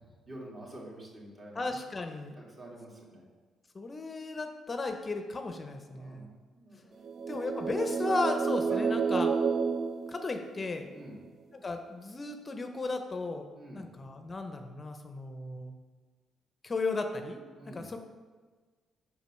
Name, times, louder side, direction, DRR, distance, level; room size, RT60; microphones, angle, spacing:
voice 1, 0.3-1.7 2.4-3.2 5.9-7.0 8.7-8.8 10.9-11.2 13.5-13.9 17.5-17.9, right 1 dB, 40° right, -3 dB, 2.2 m, -47 dB
voice 2, 1.5-2.3 3.7-6.3 7.3-9.3 10.1-10.9 11.5-13.5 13.7-15.7 16.6-18.0, left 3 dB, 30° left, 6 dB, 0.6 m, -35 dB
sound 1, 7.0-10.9, right 5 dB, 55° right, 0.4 m, -30 dB
5.2 x 4.9 x 6.3 m, 1.4 s
cardioid pair, 90°, 0 cm